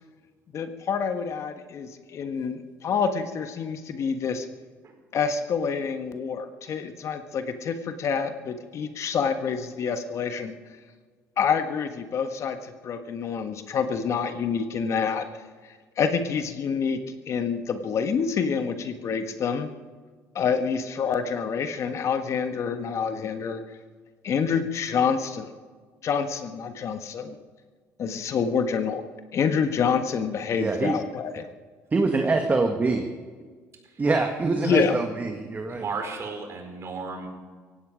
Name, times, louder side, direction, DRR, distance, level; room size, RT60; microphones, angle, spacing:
voice 1, 0.5-4.5 5.1-10.6 11.4-15.3 16.0-17.0 17.3-19.7 20.3-23.6 24.2-25.5 26.0-27.4 28.0-29.0 29.3-31.5 34.6-35.0, left 6 dB, 55° left, 8 dB, 1.4 m, -27 dB
voice 2, 30.6-31.0 31.9-33.1 34.0-35.9, right 3 dB, 30° right, 5 dB, 1.6 m, -24 dB
voice 3, 35.7-37.3, right 4 dB, 50° right, 4 dB, 4.4 m, -34 dB
17.0 x 16.0 x 5.1 m, 1.5 s
supercardioid pair, 85°, 6 cm